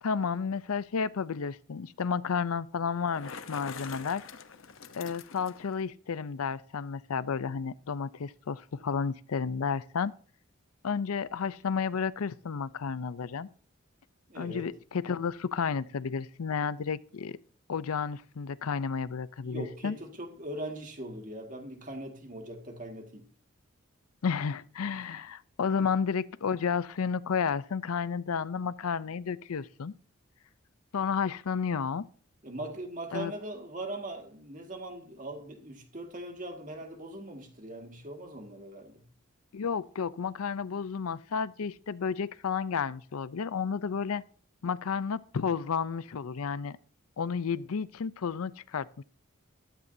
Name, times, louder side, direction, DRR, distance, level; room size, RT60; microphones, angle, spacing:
voice 1, 0.0-4.2 4.9-10.1 10.8-13.5 14.4-17.4 17.7-20.0 24.2-29.9 30.9-32.1 33.1-33.3 39.5-44.2 44.6-46.8 47.2-49.0, left 6 dB, 80° left, 0.5 m, -32 dB
Bicycle, 2.9-5.8, left 5 dB, 65° left, 0.9 m, -45 dB
voice 2, 14.3-14.7 19.4-23.3 25.8-25.9 32.4-39.0, right 1 dB, 35° right, 1.9 m, -40 dB
14.5 x 13.0 x 2.7 m
head